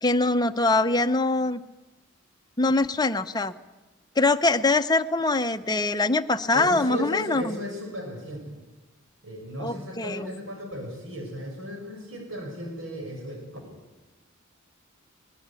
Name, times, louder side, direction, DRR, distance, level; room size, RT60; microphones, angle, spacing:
voice 1, 0.0-1.6 2.6-3.5 4.2-7.6 9.6-10.3, left 2 dB, 20° left, 8 dB, 0.8 m, -23 dB
voice 2, 6.5-8.4 9.2-13.8, equal, 70° right, 3 dB, 5.8 m, -36 dB
21.0 x 20.5 x 8.4 m, 1.1 s
head